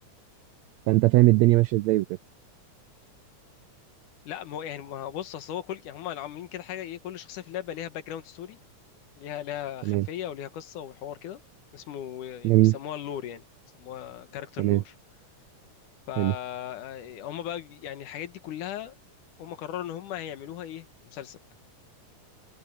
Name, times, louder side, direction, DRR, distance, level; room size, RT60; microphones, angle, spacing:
voice 1, 0.9-2.1 9.9-10.1 12.4-12.8 14.6-14.8 16.2-16.3, right 19 dB, 85° right, 1.5 m, -20 dB
voice 2, 4.3-8.6 9.2-11.4 11.7-13.4 13.7-14.9 16.1-18.9 19.4-21.4, left 11 dB, 75° left, 2.8 m, -37 dB
open air
omnidirectional pair, 3.6 m